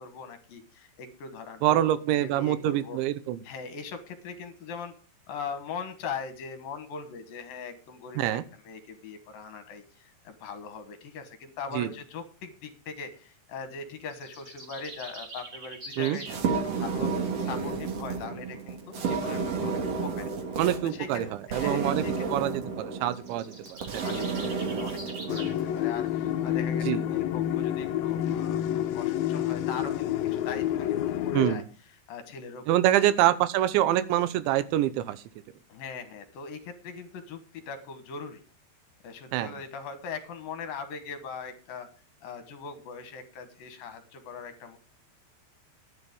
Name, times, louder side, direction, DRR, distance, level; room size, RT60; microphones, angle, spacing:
voice 1, 0.0-3.0 3.4-4.9 5.3-8.4 8.6-22.1 24.0-31.6 32.1-33.1 35.7-38.4 39.0-41.9 42.2-44.8, left 5 dB, 65° left, 9 dB, 2.5 m, -41 dB
voice 2, 1.6-3.4 8.2-8.4 11.7-11.9 16.0-16.2 20.6-21.3 21.5-24.1 26.8-27.0 31.3-31.6 32.7-35.2 39.3-39.6, right 13 dB, 85° right, 15 dB, 3.1 m, -25 dB
sound 1, 14.1-16.4 23.0-25.6, right 2 dB, 35° right, 2.2 m, -43 dB
sound 2, 16.3-25.7, right 4 dB, 55° right, 1.8 m, -31 dB
sound 3, 25.3-31.6, left 11 dB, 80° left, 2.1 m, -28 dB
11.5 x 9.8 x 5.3 m, 0.37 s
omnidirectional pair, 5.3 m